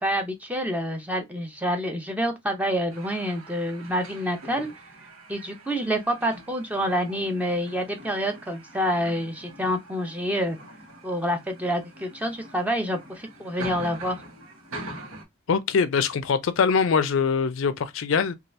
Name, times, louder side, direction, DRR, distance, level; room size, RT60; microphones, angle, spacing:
voice 1, 0.0-4.7 5.3-10.6 11.0-14.2, equal, 5° right, 0.6 m, -27 dB
sound 1, 2.9-15.2, right 1 dB, 90° right, 1.0 m, -43 dB
voice 2, 15.5-18.3, left 5 dB, 65° left, 0.4 m, -23 dB
2.8 x 2.3 x 3.0 m
head